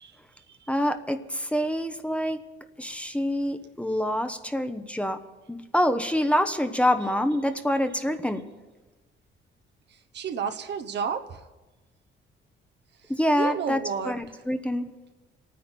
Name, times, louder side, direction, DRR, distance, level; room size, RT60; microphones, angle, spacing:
voice 1, 0.0-0.7 9.9-11.5 13.0-14.4, right 7 dB, 60° right, 1.0 m, -33 dB
voice 2, 0.7-2.4 2.8-5.2 5.5-8.4 13.1-13.8 14.1-14.9, equal, 5° left, 1.0 m, -26 dB
28.0 x 9.5 x 4.5 m
cardioid pair, 90°, 20 cm